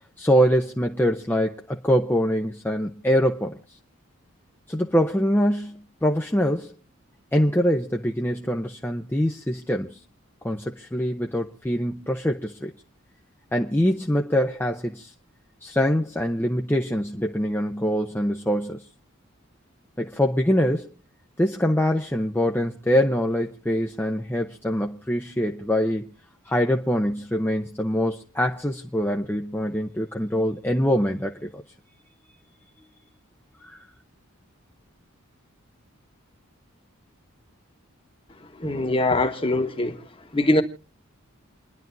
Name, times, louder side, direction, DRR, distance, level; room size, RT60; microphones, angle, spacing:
voice 1, 0.2-3.6 4.7-6.8 7.3-10.0 10.4-12.7 13.5-15.1 15.6-18.9 20.0-20.9 21.4-26.1 26.5-31.6 33.6-33.8, equal, 10° left, 0.7 m, -24 dB
voice 2, 38.6-40.0 40.3-40.6, left 2 dB, 25° left, 1.3 m, -22 dB
28.5 x 10.5 x 2.7 m
head